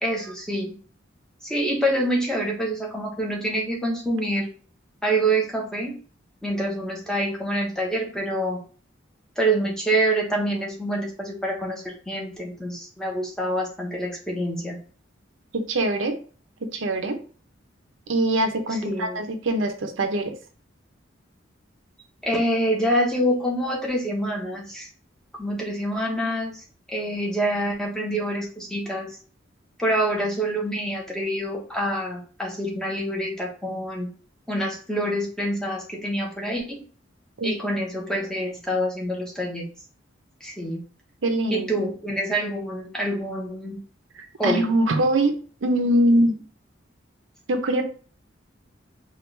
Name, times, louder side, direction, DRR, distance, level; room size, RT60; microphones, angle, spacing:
voice 1, 0.0-0.8 1.4-4.5 5.0-6.0 6.4-8.6 9.4-14.8 18.8-19.2 22.2-24.9 25.4-29.1 29.8-34.1 34.5-36.8 37.4-39.6 40.4-40.8 41.5-43.8 44.4-44.7, right 1 dB, 5° left, -2 dB, 0.9 m, -26 dB
voice 2, 15.7-16.2 16.7-17.2 18.1-20.3 37.4-37.5 41.2-41.8 44.1-45.3 45.6-46.4 47.5-47.8, right 1 dB, 90° right, 6 dB, 0.7 m, -23 dB
4.5 x 2.4 x 3.2 m, 0.40 s
head